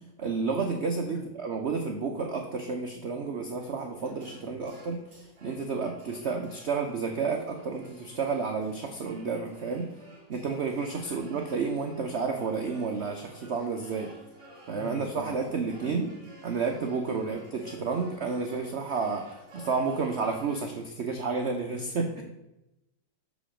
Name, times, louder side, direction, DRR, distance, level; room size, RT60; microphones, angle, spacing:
voice 1, 0.2-5.0 5.4-9.9 10.3-14.1 14.7-16.1 16.4-19.3 19.5-22.2, right 4 dB, 65° right, 3 dB, 0.7 m, -31 dB
sound 1, 3.4-20.6, equal, 15° right, 1.5 m, -52 dB
voice 2, 11.0-11.4 14.8-15.4 15.8-16.0 17.1-17.4 22.0-22.2, left 2 dB, 45° left, 2 dB, 1.2 m, -45 dB
6.7 x 5.2 x 4.9 m, 0.94 s
omnidirectional pair, 2.0 m